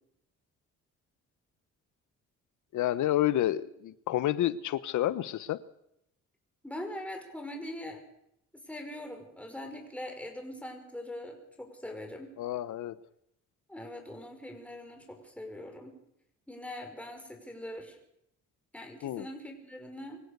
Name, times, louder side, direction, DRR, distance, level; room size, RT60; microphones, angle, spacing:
voice 1, 2.7-5.6 12.4-13.0 19.0-19.3, left 13 dB, 75° left, 16 dB, 0.9 m, -29 dB
voice 2, 6.6-8.0 8.6-12.3 13.7-16.0 16.5-18.0 18.7-20.2, left 1 dB, 5° left, 3 dB, 5.7 m, -42 dB
24.5 x 16.5 x 6.7 m, 0.78 s
cardioid pair, 90°, 30 cm